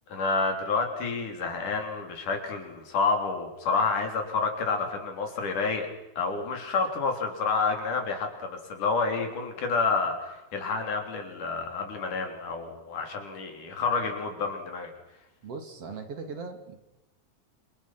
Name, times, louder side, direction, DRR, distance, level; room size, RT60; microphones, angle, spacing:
voice 1, 0.1-5.9 6.2-14.9, left 4 dB, 80° left, 4 dB, 5.1 m, -29 dB
voice 2, 15.4-16.7, right 4 dB, 50° right, 6 dB, 3.4 m, -39 dB
30.0 x 27.0 x 6.0 m, 0.98 s
omnidirectional pair, 3.6 m